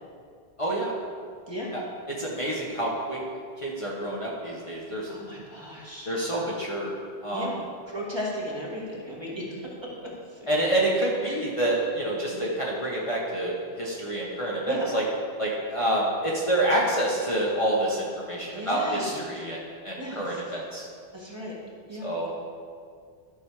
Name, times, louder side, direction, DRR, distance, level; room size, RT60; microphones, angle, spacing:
voice 1, 0.6-0.9 1.7-1.8 2.1-3.2 3.6-5.1 6.1-6.9 7.2-7.5 10.5-15.0 15.4-20.9 22.0-22.3, right 1 dB, 30° left, -5 dB, 1.3 m, -27 dB
voice 2, 5.1-6.1 7.3-7.6 7.9-9.6 12.1-12.4 14.7-14.9 18.4-19.1 20.0-20.4 21.1-21.5 21.9-22.1, equal, 25° right, -5 dB, 2.0 m, -36 dB
12.0 x 6.2 x 4.9 m, 2.2 s
omnidirectional pair, 1.0 m